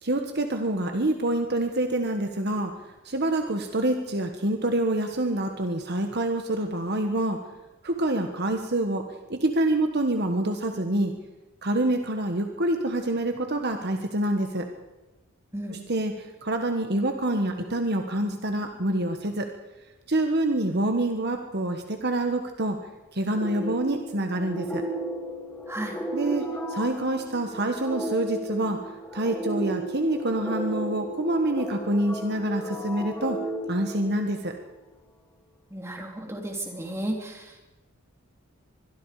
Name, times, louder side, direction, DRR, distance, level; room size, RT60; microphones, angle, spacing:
voice 1, 0.0-2.7 3.0-7.4 7.8-11.1 11.6-14.7 15.9-19.5 20.1-22.8 23.1-24.8 26.1-28.8 29.1-33.4 33.7-34.5, right 1 dB, 50° right, 5 dB, 1.5 m, -26 dB
sound 1, 23.3-34.7, right 1 dB, 10° left, 2.5 m, -34 dB
voice 2, 25.7-26.0 35.7-37.6, right 1 dB, 10° right, 1 dB, 3.2 m, -33 dB
25.0 x 21.5 x 5.0 m, 1.1 s
head